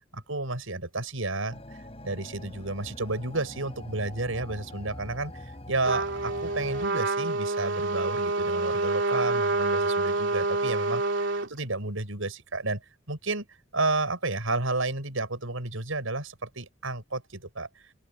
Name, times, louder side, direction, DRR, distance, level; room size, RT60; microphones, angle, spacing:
voice 1, 0.1-12.8 13.1-13.5 13.7-17.7, right 2 dB, 85° right, 5.7 m, -31 dB
sound 1, 1.5-6.9, left 1 dB, 30° left, 5.4 m, -43 dB
Trumpet, 5.8-11.5, right 2 dB, 65° right, 3.2 m, -27 dB
open air
head